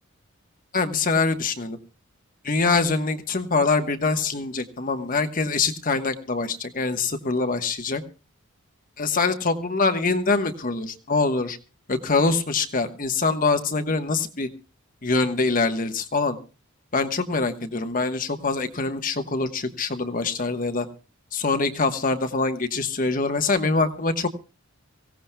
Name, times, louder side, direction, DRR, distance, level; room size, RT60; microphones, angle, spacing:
voice 1, 0.7-1.8 2.4-8.0 9.0-11.6 11.9-14.5 15.0-16.4 16.9-20.9 21.3-24.3, left 3 dB, 40° left, 7 dB, 1.2 m, -24 dB
24.5 x 16.5 x 2.2 m, 0.32 s
head